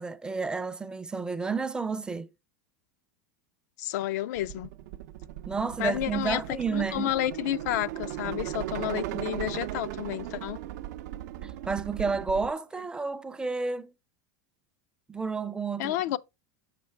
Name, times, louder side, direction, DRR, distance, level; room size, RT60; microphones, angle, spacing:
voice 1, 0.0-2.3 5.5-7.1 11.4-13.9 15.1-16.0, right 4 dB, 10° right, 0.4 m, -31 dB
voice 2, 3.8-4.7 5.8-6.4 6.7-10.6 15.8-16.2, left 13 dB, 75° left, 0.4 m, -30 dB
sound 1, 4.4-12.5, right 13 dB, 75° right, 0.5 m, -37 dB
6.6 x 5.0 x 3.2 m
supercardioid pair, 145°, 9 cm